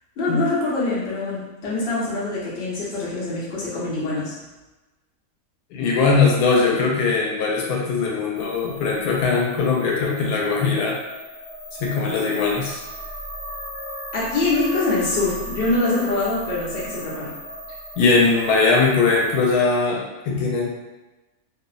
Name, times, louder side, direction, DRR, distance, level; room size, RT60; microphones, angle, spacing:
voice 1, 0.2-4.3 14.1-17.4, left 2 dB, 50° left, -7 dB, 0.9 m, -24 dB
voice 2, 5.7-11.0 11.8-12.8 18.0-20.7, left 4 dB, 90° left, -2 dB, 1.1 m, -20 dB
sound 1, 8.3-19.5, equal, 35° left, 0.4 m, -37 dB
2.7 x 2.0 x 2.4 m, 1.1 s
omnidirectional pair, 1.6 m